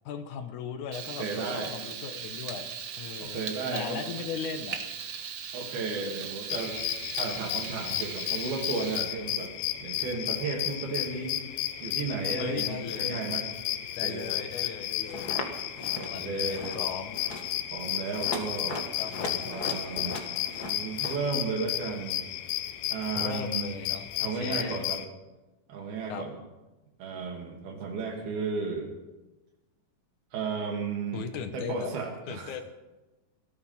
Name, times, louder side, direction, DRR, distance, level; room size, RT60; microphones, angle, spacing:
voice 1, 0.1-2.7 3.0-4.8 12.4-13.2 14.0-15.3 16.1-17.2 19.0-19.5 23.1-24.8 26.1-26.3 31.1-31.9 32.3-32.6, left 6 dB, 65° left, 8 dB, 2.2 m, -38 dB
Frying (food), 0.9-9.0, right 7 dB, 65° right, 1.4 m, -39 dB
voice 2, 1.2-1.8 3.2-4.0 5.5-6.8 7.2-9.5 9.8-11.4 11.8-13.5 14.0-14.4 15.9-16.8 17.7-18.8 19.5-20.2 20.6-22.2 22.9-23.8 24.2-25.0 25.7-26.3 27.0-28.9 30.3-31.2 31.5-32.5, right 4 dB, 80° right, 2 dB, 4.3 m, -34 dB
sound 1, 6.5-25.1, left 13 dB, 90° left, 2.8 m, -33 dB
sound 2, 15.1-15.5 15.8-16.1 16.4-16.8 17.1-17.5 18.0-21.2, left 2 dB, 50° left, 1.1 m, -38 dB
18.5 x 13.0 x 5.7 m, 1.1 s
omnidirectional pair, 4.3 m